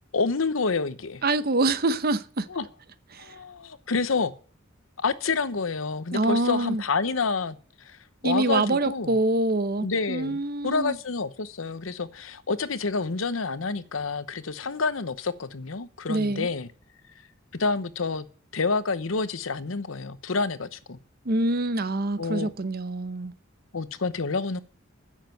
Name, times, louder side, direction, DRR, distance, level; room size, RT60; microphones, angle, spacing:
voice 1, 0.1-1.2 2.5-2.6 3.2-4.3 5.0-9.2 9.8-16.7 17.5-18.3 18.5-21.0 22.2-22.5 23.7-24.6, left 4 dB, 85° left, 0.9 m, -28 dB
voice 2, 1.2-2.5 3.1-3.4 6.1-6.8 8.2-11.0 16.1-16.5 21.2-23.3, right 2 dB, 50° right, 0.9 m, -25 dB
10.0 x 7.4 x 9.1 m
head